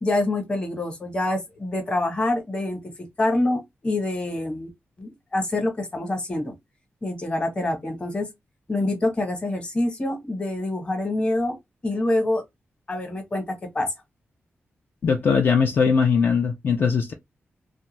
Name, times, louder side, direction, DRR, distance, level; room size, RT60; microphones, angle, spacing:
voice 1, 0.0-2.8 3.2-4.7 5.0-6.5 7.0-8.3 8.7-11.6 11.8-12.4 12.9-13.9, left 2 dB, 25° left, 0.9 m, -26 dB
voice 2, 15.0-17.1, left 5 dB, 50° left, 0.4 m, -20 dB
2.5 x 2.3 x 3.0 m
wide cardioid pair, 155°, 4 cm